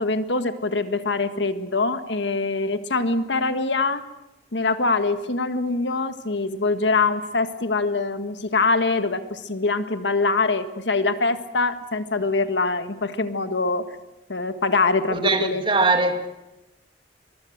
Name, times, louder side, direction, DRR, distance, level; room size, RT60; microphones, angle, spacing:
voice 1, 0.0-4.0 4.5-13.8 14.3-15.6, left 3 dB, 80° left, 1.7 m, -24 dB
voice 2, 15.1-16.3, right 3 dB, 30° right, 2.3 m, -21 dB
23.0 x 22.5 x 8.0 m
head